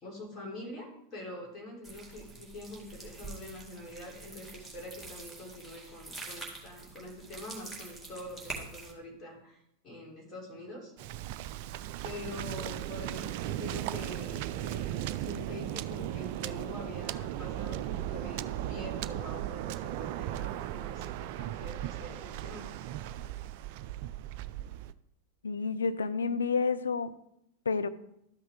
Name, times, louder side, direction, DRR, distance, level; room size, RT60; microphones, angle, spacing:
voice 1, 0.0-10.9 12.0-22.7, left 1 dB, 25° left, 3.4 m, -45 dB
sound 1, 1.8-8.9, right 3 dB, 5° left, 2.2 m, -45 dB
Waves surf, 11.0-24.9, right 13 dB, 45° right, 0.3 m, -37 dB
voice 2, 25.4-27.2 27.7-27.9, left 5 dB, 70° left, 0.5 m, -29 dB
12.5 x 5.7 x 3.5 m
figure-of-eight pair, 90°, 0 cm